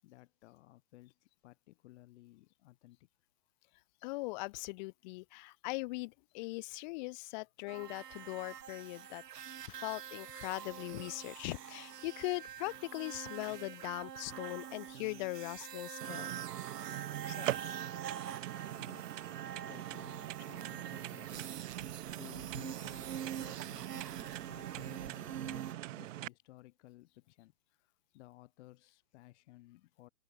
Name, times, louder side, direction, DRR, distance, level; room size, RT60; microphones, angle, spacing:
voice 1, 0.0-3.1 18.4-21.6 22.2-30.1, left 17 dB, 45° left, 6.0 m, -58 dB
voice 2, 4.0-9.2 9.6-16.3 17.3-17.8, left 25 dB, 30° left, 0.8 m, -40 dB
sound 1, 7.7-25.7, right 9 dB, 85° right, 0.9 m, -45 dB
sound 2, 16.0-26.3, right 14 dB, 50° right, 4.7 m, -42 dB
hypercardioid pair, 125°, 47 cm